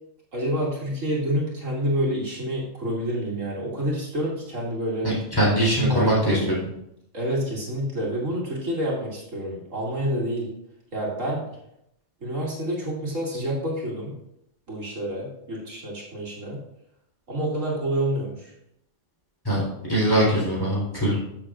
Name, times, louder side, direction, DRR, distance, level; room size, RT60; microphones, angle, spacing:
voice 1, 0.3-5.1 5.6-6.6 7.1-10.5 10.9-11.4 12.2-14.1 14.7-16.6 17.3-18.5, equal, 80° right, -4 dB, 2.8 m, -28 dB
voice 2, 5.0-6.4 19.4-19.6 19.9-21.2, right 1 dB, 15° left, -5 dB, 3.8 m, -22 dB
13.0 x 7.2 x 2.5 m, 0.78 s
omnidirectional pair, 1.3 m